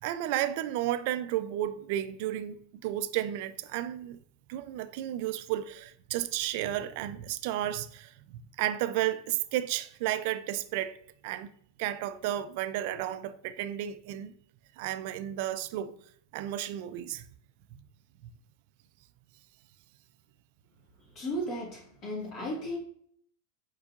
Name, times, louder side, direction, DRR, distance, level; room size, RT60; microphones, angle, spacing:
voice 1, 0.0-4.2 4.5-11.0 11.2-11.5 11.8-14.3 14.8-16.0 16.3-17.2 17.7-17.8, right 12 dB, 60° right, 0.3 m, -32 dB
voice 2, 21.1-22.8, equal, 40° left, 1.6 m, -35 dB
4.6 x 4.3 x 2.4 m
hypercardioid pair, 95°, 0 cm